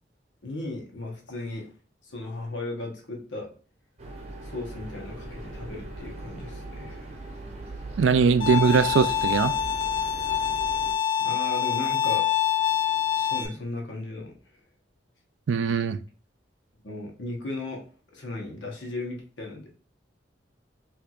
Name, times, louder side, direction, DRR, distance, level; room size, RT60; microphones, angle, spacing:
voice 1, 0.4-1.7 2.0-3.5 4.4-7.1 11.2-12.3 13.1-14.3 16.8-17.9 18.1-19.7, left 2 dB, 85° left, 0 dB, 1.1 m, -36 dB
sound 1, 4.0-10.9, right 2 dB, 35° right, 0.8 m, -40 dB
voice 2, 8.0-9.5 15.5-16.0, right 5 dB, 90° right, 13 dB, 0.4 m, -21 dB
Bowed string instrument, 8.4-13.5, left 9 dB, 40° left, 0.8 m, -25 dB
4.4 x 2.6 x 2.4 m, 0.39 s
head